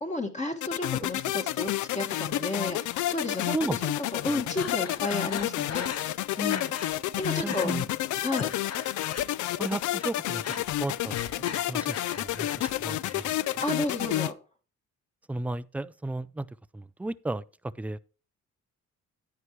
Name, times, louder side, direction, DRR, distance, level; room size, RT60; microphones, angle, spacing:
voice 1, 0.0-3.6 4.2-5.9 6.4-6.7 7.1-7.7 8.2-8.5 13.6-14.3, left 2 dB, 25° left, 1.6 m, -32 dB
sound 1, 0.6-14.3, left 14 dB, 75° left, 0.5 m, -30 dB
Breathing, 4.6-7.0 7.2-7.7 8.1-9.7 9.9-12.8 13.1-13.7, left 6 dB, 55° left, 1.3 m, -39 dB
voice 2, 7.4-7.9 9.6-10.4 10.8-13.6 15.3-16.5 16.7-17.4 17.8-18.0, right 2 dB, 5° right, 0.4 m, -34 dB
9.7 x 9.7 x 3.1 m
cardioid pair, 90°, 30 cm